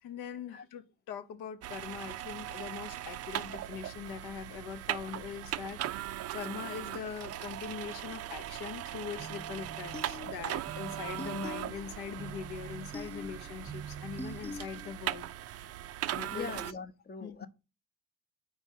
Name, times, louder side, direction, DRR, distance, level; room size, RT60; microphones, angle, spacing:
voice 1, 0.0-5.8 6.1-15.3 16.1-16.6 17.2-17.5, left 7 dB, 70° left, 0.9 m, -42 dB
sound 1, 1.6-16.7, right 13 dB, 40° right, 0.4 m, -39 dB
sound 2, 9.2-15.2, equal, 5° right, 0.9 m, -45 dB
voice 2, 16.3-17.5, left 5 dB, 25° left, 0.8 m, -42 dB
4.9 x 4.0 x 5.6 m
hypercardioid pair, 45°, 41 cm